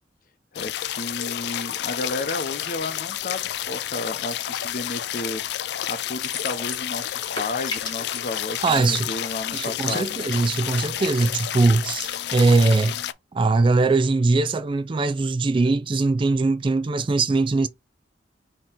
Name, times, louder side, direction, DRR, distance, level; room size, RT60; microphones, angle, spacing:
sound 1, 0.5-13.1, left 12 dB, 65° left, 0.3 m, -30 dB
voice 1, 0.5-5.4 5.9-10.2, left 2 dB, 50° left, 0.7 m, -32 dB
sound 2, 6.2-6.9 7.2-8.2, left 3 dB, 25° left, 1.2 m, -33 dB
voice 2, 8.6-9.1 9.5-13.0 13.3-17.7, right 3 dB, 30° right, 0.3 m, -21 dB
4.4 x 3.0 x 3.7 m
head